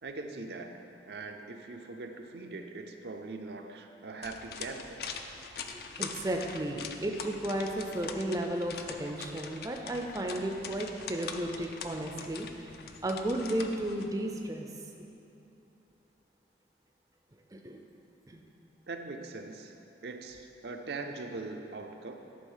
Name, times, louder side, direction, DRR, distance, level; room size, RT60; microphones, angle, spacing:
voice 1, 0.0-5.0 18.9-19.8 20.0-22.2, right 3 dB, 70° right, 5 dB, 0.5 m, -41 dB
sound 1, 4.2-14.1, left 6 dB, 55° left, 0.4 m, -43 dB
voice 2, 5.7-12.7 13.0-14.7 17.5-17.8 18.3-18.4, right 1 dB, 20° right, 2 dB, 0.4 m, -34 dB
11.5 x 3.9 x 5.6 m, 2.9 s
head